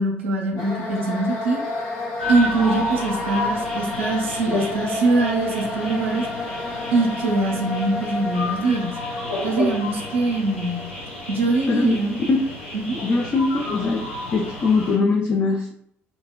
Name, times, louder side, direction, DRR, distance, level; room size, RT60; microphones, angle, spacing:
voice 1, 0.0-1.6 2.3-6.3 6.9-9.0 9.4-10.8 11.3-12.2 12.7-13.0, right 2 dB, 80° right, -1 dB, 0.5 m, -23 dB
sound 1, 0.6-12.4, left 2 dB, 55° left, 0.8 m, -31 dB
sound 2, 2.2-15.0, left 2 dB, 85° left, 1.1 m, -31 dB
voice 2, 13.0-14.1 14.3-15.7, left 4 dB, 35° left, 1 dB, 0.4 m, -21 dB
3.1 x 2.0 x 2.2 m, 0.73 s
figure-of-eight pair, 50°, 6 cm